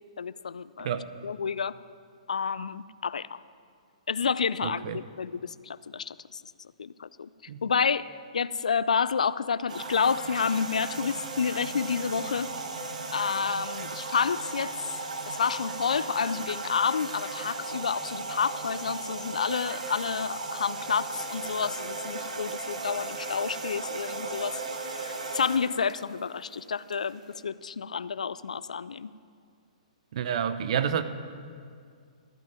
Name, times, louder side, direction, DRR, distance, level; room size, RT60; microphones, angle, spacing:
voice 1, 0.2-0.9 1.2-1.8 2.3-3.4 4.1-6.4 6.8-7.3 7.6-12.5 13.1-14.7 15.3-24.6 24.9-29.1, left 6 dB, 75° left, 17 dB, 0.3 m, -29 dB
voice 2, 4.6-5.0 7.5-7.6 30.1-31.0, right 8 dB, 55° right, 11 dB, 0.7 m, -29 dB
sound 1, 9.7-27.4, right 3 dB, 75° right, 1.4 m, -36 dB
13.5 x 6.0 x 8.9 m, 2.2 s
figure-of-eight pair, 120°, 4 cm